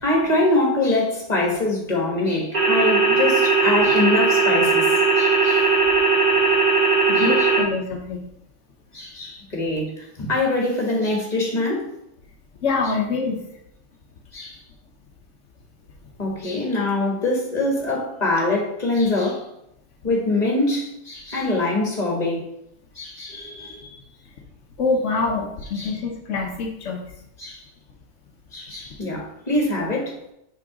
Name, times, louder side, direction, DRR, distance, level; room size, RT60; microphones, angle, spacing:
voice 1, 0.0-4.9 5.2-5.6 7.1-7.5 8.9-11.9 14.3-14.6 16.2-19.4 20.0-22.5 22.9-23.9 25.8-25.9 27.4-27.6 28.5-30.3, left 2 dB, 35° left, 0 dB, 1.7 m, -24 dB
sound 1, 2.5-7.6, right 4 dB, 35° right, 2.9 m, -18 dB
voice 2, 7.1-8.2 12.6-13.4 24.8-27.0, left 4 dB, 80° left, 1 dB, 1.1 m, -25 dB
5.9 x 3.8 x 5.0 m, 0.79 s
omnidirectional pair, 1.3 m